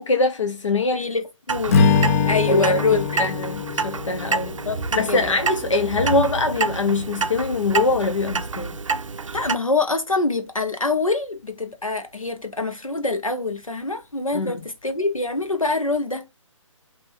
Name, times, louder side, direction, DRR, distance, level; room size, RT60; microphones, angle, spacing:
voice 1, 0.0-1.0 2.5-4.5 5.0-8.8 14.3-14.6, left 3 dB, 65° left, 0.7 m, -23 dB
voice 2, 0.9-1.8 2.3-3.1 4.5-5.4 9.3-16.2, left 3 dB, 90° left, 1.0 m, -25 dB
Clock, 1.5-9.6, right 4 dB, 70° right, 0.5 m, -28 dB
Strum, 1.7-6.1, left 5 dB, 25° left, 0.4 m, -23 dB
5.4 x 2.7 x 2.5 m
figure-of-eight pair, 140°, 17 cm